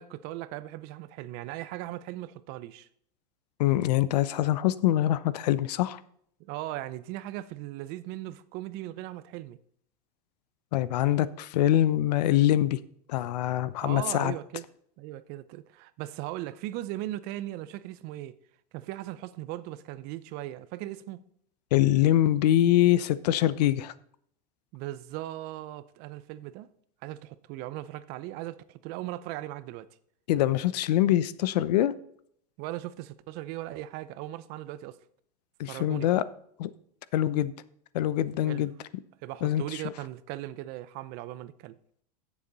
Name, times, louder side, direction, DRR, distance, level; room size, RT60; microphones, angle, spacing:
voice 1, 0.0-2.9 6.4-9.6 13.8-14.7 15.0-18.4 18.7-21.2 24.7-26.7 27.0-29.9 32.6-35.0 35.7-36.1 38.5-38.7 39.2-41.8, right 15 dB, 50° right, 0.8 m, -38 dB
voice 2, 3.6-6.0 10.7-12.8 13.1-14.3 21.7-23.9 30.3-31.9 35.6-36.2 36.6-36.7 37.1-37.5 37.9-38.7 39.4-39.8, left 13 dB, 80° left, 0.8 m, -24 dB
15.5 x 7.2 x 4.1 m
supercardioid pair, 135°, 20 cm